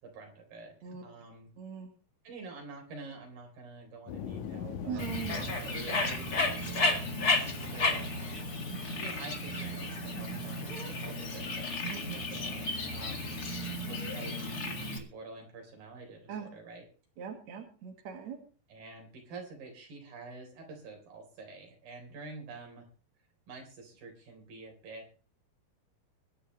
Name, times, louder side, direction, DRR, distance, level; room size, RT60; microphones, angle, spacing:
voice 1, 0.0-1.5 2.2-5.0 5.4-8.5 8.8-16.9 18.7-22.9 23.5-25.1, right 3 dB, 70° right, 2 dB, 5.7 m, -48 dB
voice 2, 1.6-1.9 4.9-5.5 7.1-7.2 11.9-12.0 16.3-16.5 17.2-18.4, right 8 dB, 55° right, 3 dB, 2.9 m, -40 dB
sound 1, 4.1-10.7, left 8 dB, 70° left, 2.2 m, -44 dB
Bird, 5.0-15.0, left 2 dB, 30° left, 2.1 m, -33 dB
22.5 x 11.0 x 3.2 m, 0.37 s
omnidirectional pair, 4.2 m